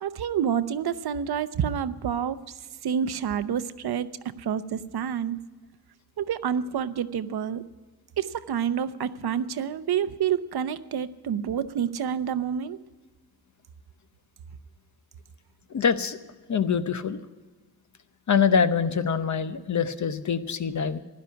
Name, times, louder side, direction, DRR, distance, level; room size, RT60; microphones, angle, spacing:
voice 1, 0.0-4.1 4.4-5.4 6.2-7.6 8.2-12.8, right 8 dB, 75° right, 12 dB, 0.8 m, -28 dB
voice 2, 15.7-16.2 16.5-17.2 18.3-21.0, left 6 dB, 50° left, 10 dB, 0.9 m, -24 dB
16.0 x 11.5 x 5.8 m, 1.3 s
wide cardioid pair, 140°, 38 cm